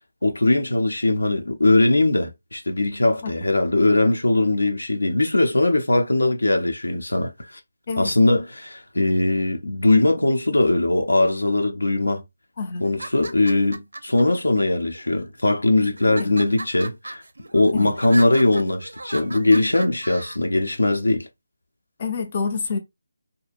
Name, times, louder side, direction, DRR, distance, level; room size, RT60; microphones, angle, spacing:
voice 1, 0.2-7.6 8.0-12.2 12.8-17.2 17.5-21.3, left 2 dB, 90° left, 0.6 m, -20 dB
sound 1, 12.8-14.2 14.9-15.5 16.0-20.4, right 2 dB, 80° right, 0.5 m, -36 dB
voice 2, 22.0-22.8, left 4 dB, 35° left, 0.5 m, -27 dB
2.7 x 2.2 x 2.5 m
figure-of-eight pair, 160°, 0 cm